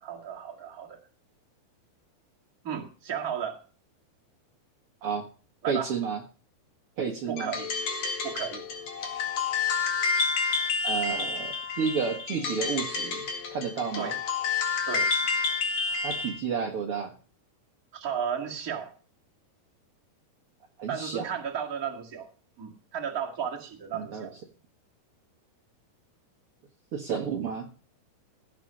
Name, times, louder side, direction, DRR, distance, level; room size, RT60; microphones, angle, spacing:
voice 1, 0.0-1.0 2.6-3.6 5.6-5.9 7.3-7.7 8.2-8.6 14.0-14.2 14.9-15.1 17.9-18.9 20.9-22.3 22.6-24.3, right 8 dB, 35° right, 1.6 m, -34 dB
voice 2, 5.7-6.2 7.0-7.5 10.8-13.2 13.5-14.1 16.0-17.1 20.8-21.3 23.9-24.3 26.9-27.7, right 6 dB, 70° right, 1.3 m, -31 dB
sound 1, 7.4-16.4, left 5 dB, 50° left, 2.7 m, -29 dB
16.5 x 6.0 x 6.3 m
omnidirectional pair, 4.7 m